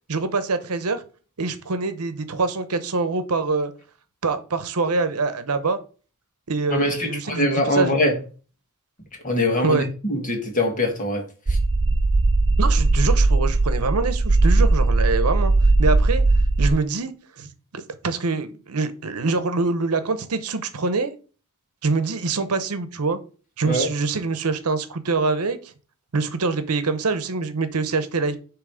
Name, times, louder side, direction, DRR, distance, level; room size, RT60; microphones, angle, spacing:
voice 1, 0.1-1.0 1.4-3.7 4.2-5.8 6.5-7.9 9.6-9.9 12.6-15.5 15.8-16.2 16.6-17.5 17.7-21.1 21.8-23.2 23.6-25.6 26.1-28.4, right 3 dB, 80° right, 0.8 m, -24 dB
voice 2, 6.7-8.1 9.2-11.6 23.6-23.9, left 1 dB, 35° left, 1.7 m, -23 dB
sound 1, 11.5-16.7, right 2 dB, 25° right, 0.3 m, -18 dB
7.2 x 3.2 x 4.9 m
head